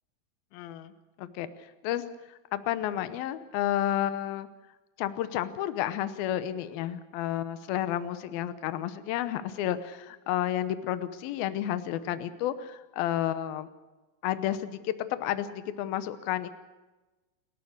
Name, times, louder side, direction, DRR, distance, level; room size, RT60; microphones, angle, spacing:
voice 1, 0.5-0.9 1.2-1.5 1.8-2.0 2.5-4.5 5.0-13.7 14.2-16.5, left 12 dB, 80° left, 12 dB, 2.8 m, -31 dB
29.0 x 14.5 x 6.6 m, 1.1 s
omnidirectional pair, 4.3 m